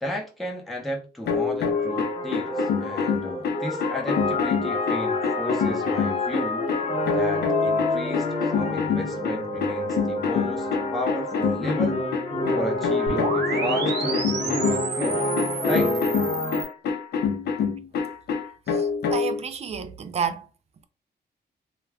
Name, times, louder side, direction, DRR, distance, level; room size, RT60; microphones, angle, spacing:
voice 1, 0.0-6.7 7.1-12.0 12.5-15.2 15.7-16.0, left 1 dB, ahead, 0.7 m, -34 dB
sound 1, 1.3-19.4, left 6 dB, 70° left, 0.5 m, -27 dB
sound 2, 1.7-16.6, left 2 dB, 40° left, 0.8 m, -28 dB
sound 3, 13.1-16.7, right 4 dB, 80° right, 0.8 m, -31 dB
voice 2, 18.7-20.5, right 7 dB, 40° right, 0.4 m, -30 dB
2.3 x 2.2 x 3.2 m
wide cardioid pair, 135°, 17 cm